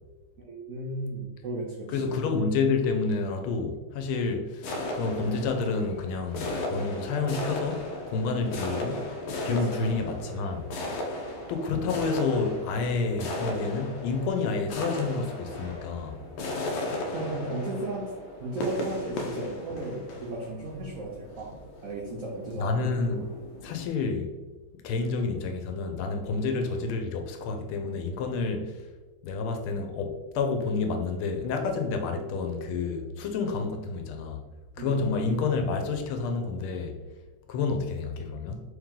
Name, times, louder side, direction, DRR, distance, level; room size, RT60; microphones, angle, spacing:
voice 1, 0.4-2.2 9.6-9.8 16.7-18.1 18.4-21.5 21.8-22.8 26.2-26.4 34.8-35.2, right 2 dB, 80° right, 0.7 m, -35 dB
voice 2, 1.9-9.1 9.4-11.1 11.5-16.2 22.6-23.3 23.6-24.3 24.8-28.8 29.2-34.4 34.8-36.9 37.5-38.6, left 4 dB, 90° left, 1.5 m, -29 dB
sound 1, 4.6-23.9, left 2 dB, 75° left, 1.3 m, -36 dB
3.4 x 3.1 x 3.6 m
omnidirectional pair, 2.3 m